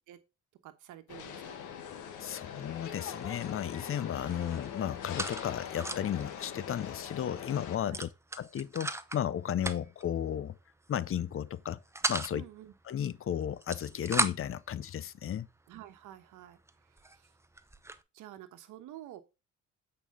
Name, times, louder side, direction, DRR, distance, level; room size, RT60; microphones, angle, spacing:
voice 1, 0.6-1.6 7.8-8.0 12.3-12.7 15.7-17.3 18.1-19.2, right 13 dB, 90° right, 1.2 m, -50 dB
sound 1, 1.1-7.8, left 8 dB, 80° left, 1.6 m, -42 dB
voice 2, 2.2-8.1 8.4-10.6 10.9-11.8 12.1-12.4 12.9-15.5, left 10 dB, 45° left, 0.6 m, -34 dB
sound 2, 2.5-2.8 3.1-3.9 4.2-6.2 6.6-6.7 7.0-7.2 7.9-9.2 9.6-10.1 10.8-11.1 11.5-12.3 13.4-14.6 15.3-15.4 16.0-16.1 16.7-16.8 17.0-18.0, right 2 dB, 10° right, 0.7 m, -36 dB
8.4 x 5.2 x 3.6 m
cardioid pair, 90°, 30 cm